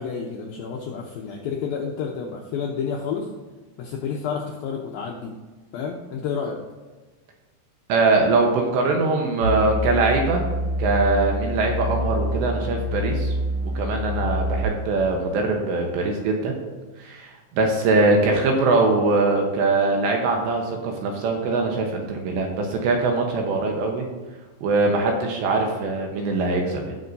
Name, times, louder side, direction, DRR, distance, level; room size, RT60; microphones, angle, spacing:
voice 1, 0.0-3.3 3.8-5.4 5.7-6.6, left 6 dB, 85° left, 0 dB, 2.1 m, -30 dB
voice 2, 7.9-10.4 10.8-13.3 13.8-16.5 17.0-17.3 17.6-24.0 24.6-26.9, right 3 dB, 75° right, 1 dB, 3.1 m, -22 dB
sound 1, 9.4-14.6, left 1 dB, 25° right, 1.8 m, -26 dB
17.0 x 6.1 x 2.7 m, 1.3 s
omnidirectional pair, 5.2 m